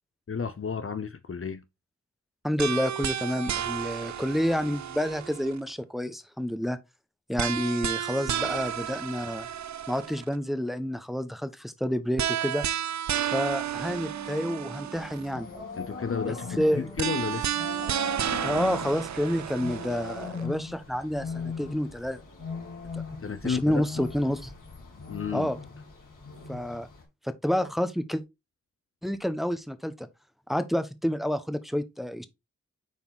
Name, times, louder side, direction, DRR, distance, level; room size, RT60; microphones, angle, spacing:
voice 1, 0.3-1.6 15.8-17.6 23.2-24.1 25.1-25.5, left 6 dB, 45° left, 0.7 m, -32 dB
voice 2, 2.4-6.8 7.3-9.5 9.9-12.6 13.3-15.5 16.6-16.8 18.4-22.2 23.4-24.5 25.3-25.6 26.5-26.9 27.2-28.2 29.0-30.1 30.5-32.3, equal, ahead, 1.0 m, -29 dB
sound 1, 2.6-5.7 7.4-10.4 12.2-15.3 17.0-20.4, right 10 dB, 65° right, 0.5 m, -32 dB
Wind instrument woodwind instrument, 13.8-18.9, left 1 dB, 15° left, 1.1 m, -49 dB
sound 2, 14.9-27.0, left 5 dB, 85° left, 2.6 m, -40 dB
7.3 x 4.5 x 4.0 m
cardioid pair, 40°, 30 cm